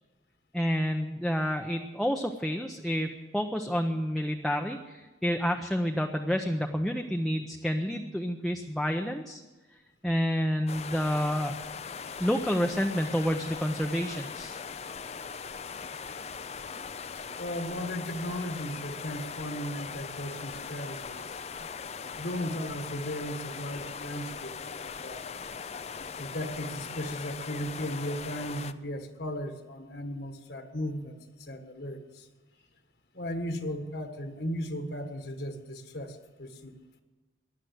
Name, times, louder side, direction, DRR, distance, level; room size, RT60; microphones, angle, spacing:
voice 1, 0.5-9.4 10.0-11.6 12.2-14.6, equal, ahead, 2 dB, 0.7 m, -29 dB
sound 1, 10.7-28.7, left 6 dB, 35° left, 0.5 m, -40 dB
voice 2, 17.4-21.4 22.2-25.3 26.2-32.3 33.1-36.7, equal, 60° left, 6 dB, 1.6 m, -36 dB
16.5 x 11.0 x 7.9 m, 1.2 s
head